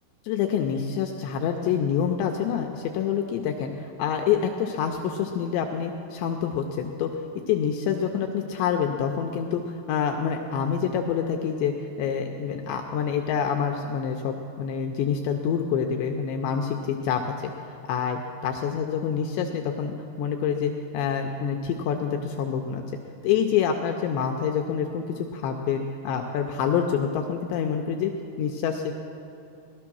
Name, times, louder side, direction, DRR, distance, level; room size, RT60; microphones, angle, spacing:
voice 1, 0.2-7.1 7.5-22.8 23.2-28.1 28.4-28.9, left 7 dB, 85° left, 4 dB, 2.5 m, -27 dB
18.5 x 12.5 x 6.2 m, 2.7 s
omnidirectional pair, 5.9 m